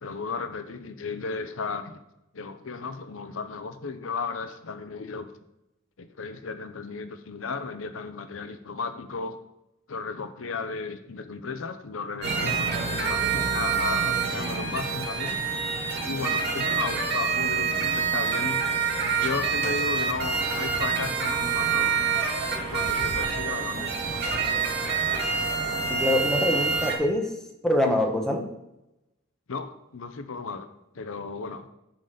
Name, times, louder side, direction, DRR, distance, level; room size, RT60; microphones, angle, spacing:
voice 1, 0.0-2.0 2.3-5.3 6.0-9.4 9.9-12.7 13.1-15.4 16.0-18.6 19.2-22.0 22.7-23.9 29.5-30.7 30.9-31.7, left 4 dB, 75° left, 9 dB, 0.7 m, -34 dB
sound 1, 12.2-27.0, right 5 dB, 55° right, 1.8 m, -27 dB
voice 2, 25.9-27.3 27.6-28.4, left 1 dB, 5° left, 1 dB, 1.2 m, -24 dB
11.5 x 4.0 x 5.1 m, 0.88 s
head